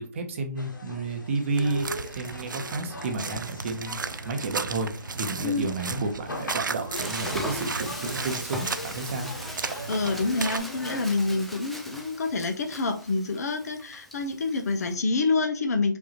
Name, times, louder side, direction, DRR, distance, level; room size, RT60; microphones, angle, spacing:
voice 1, 0.0-4.0 4.2-9.3, right 3 dB, 40° right, 5 dB, 1.0 m, -31 dB
sound 1, 0.6-11.5, left 2 dB, 85° left, 1.3 m, -40 dB
sound 2, 1.5-10.6, right 5 dB, 75° right, 0.4 m, -35 dB
Frying (food), 7.0-15.0, equal, ahead, 0.3 m, -40 dB
voice 2, 9.9-16.0, left 3 dB, 55° left, 7 dB, 0.9 m, -27 dB
5.0 x 2.8 x 3.0 m, 0.35 s
figure-of-eight pair, 145°, 10 cm